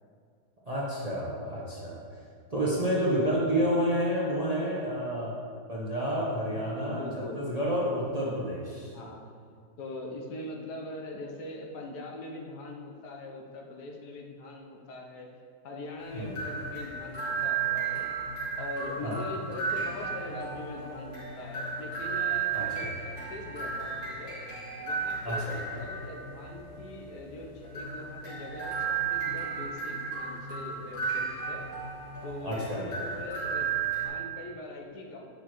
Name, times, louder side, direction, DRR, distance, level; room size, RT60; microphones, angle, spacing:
voice 1, 0.7-2.0 2.5-5.3 5.7-7.0 7.3-8.9 16.1-16.3 19.0-19.2 22.5-22.9 25.2-25.6 32.4-32.9, equal, 30° right, -6 dB, 0.8 m, -29 dB
voice 2, 6.9-7.5 8.8-9.3 9.8-15.3 15.6-18.3 18.6-24.4 24.8-31.6 32.2-35.3, left 2 dB, 75° left, 0 dB, 1.5 m, -42 dB
sound 1, 16.0-34.1, right 5 dB, 55° left, 2.6 m, -34 dB
8.2 x 6.6 x 3.1 m, 2.2 s
omnidirectional pair, 1.8 m